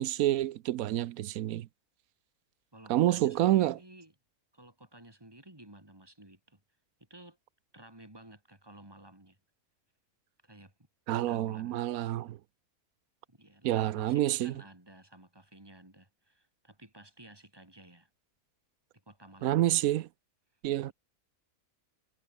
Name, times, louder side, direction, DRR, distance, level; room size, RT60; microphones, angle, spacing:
voice 1, 0.0-1.7 2.9-3.8 11.1-12.4 13.6-14.5 19.4-20.1 20.6-20.9, right 14 dB, 75° right, 1.1 m, -28 dB
voice 2, 2.7-4.1 4.5-6.6 7.0-7.4 7.7-9.4 10.4-10.7 11.1-11.8 13.3-18.1 18.9-19.6 20.9-21.0, right 1 dB, 15° right, 4.0 m, -53 dB
omnidirectional pair, 1.6 m